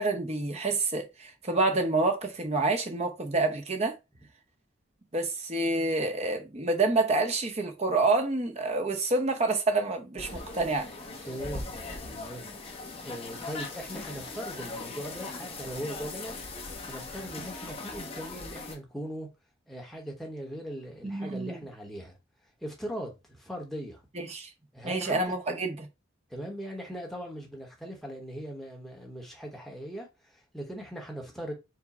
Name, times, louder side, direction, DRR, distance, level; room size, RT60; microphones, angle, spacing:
voice 1, 0.0-4.0 5.1-10.9 21.0-21.6 24.1-24.5 24.8-25.9, right 3 dB, 30° right, 0.8 m, -28 dB
sound 1, 10.2-18.7, left 3 dB, 30° left, 0.8 m, -40 dB
voice 2, 11.2-11.8 12.1-12.5 13.0-16.4 16.8-19.3 19.7-22.2 22.6-24.0 24.7-25.3 26.3-31.5, equal, ahead, 1.0 m, -39 dB
4.8 x 2.1 x 4.1 m
head